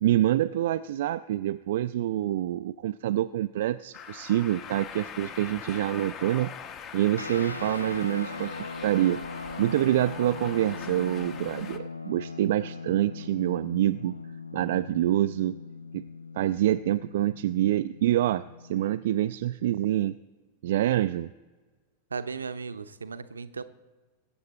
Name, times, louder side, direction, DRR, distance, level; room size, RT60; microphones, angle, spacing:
voice 1, 0.0-6.5 6.9-8.5 8.8-9.2 9.6-14.2 14.5-15.6 15.9-16.0 16.3-20.1 20.6-21.3, right 13 dB, 55° right, 12 dB, 0.3 m, -26 dB
sound 1, 3.9-11.8, left 7 dB, 30° left, 1.1 m, -42 dB
sound 2, 7.2-18.9, left 4 dB, 85° left, 0.5 m, -40 dB
voice 2, 22.1-23.6, right 5 dB, 75° right, 13 dB, 0.7 m, -36 dB
22.0 x 8.7 x 4.1 m, 1.3 s
figure-of-eight pair, 90°, 0 cm